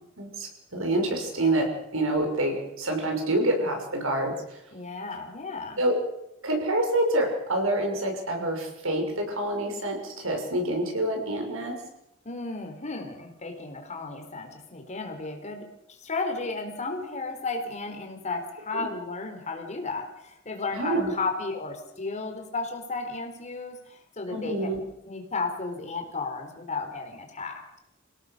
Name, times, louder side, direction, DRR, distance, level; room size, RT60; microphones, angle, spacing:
voice 1, 0.2-4.3 5.8-5.9 6.4-11.8 18.7-18.8 20.7-21.1 24.3-24.8, right 1 dB, 80° right, 3 dB, 6.4 m, -27 dB
voice 2, 4.7-5.8 12.2-24.7 25.1-27.6, left 3 dB, 35° left, 3 dB, 4.0 m, -34 dB
28.5 x 17.5 x 6.7 m, 0.83 s
head